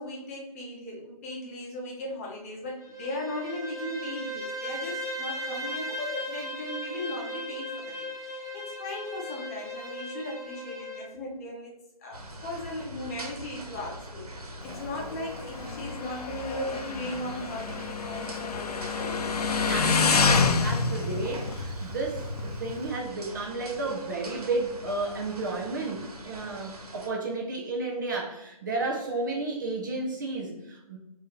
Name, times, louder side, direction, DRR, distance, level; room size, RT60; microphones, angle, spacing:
voice 1, 0.0-11.7 12.0-19.2 23.7-23.8, left 1 dB, 25° left, -2 dB, 0.9 m, -37 dB
Bowed string instrument, 2.8-11.1, equal, 5° right, 1.3 m, -37 dB
sound 1, 12.1-27.1, right 1 dB, 80° right, 1.2 m, -43 dB
Motorcycle, 14.6-22.9, left 4 dB, 85° left, 0.5 m, -28 dB
voice 2, 19.7-31.0, right 3 dB, 30° right, -1 dB, 0.5 m, -32 dB
4.5 x 2.7 x 3.2 m, 0.90 s
hypercardioid pair, 155°, 19 cm